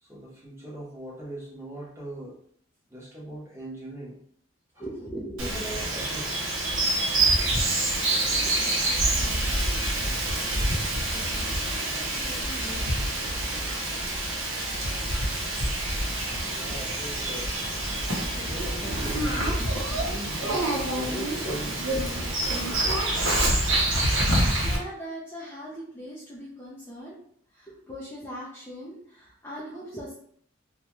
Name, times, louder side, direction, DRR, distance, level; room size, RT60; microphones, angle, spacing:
voice 1, 0.0-2.4 2.9-4.2 4.7-4.8 5.4-6.6 16.4-17.5 18.3-19.6 20.0-22.4, right 1 dB, 15° right, -5 dB, 0.9 m, -40 dB
voice 2, 4.8-5.7 8.1-10.7 11.1-13.1 24.6-27.2 27.5-30.1, equal, 10° left, -7 dB, 0.5 m, -41 dB
Bird vocalization bird call bird song, 5.4-24.8, right 1 dB, 75° right, 0.8 m, -26 dB
2.7 x 2.3 x 3.0 m, 0.64 s
head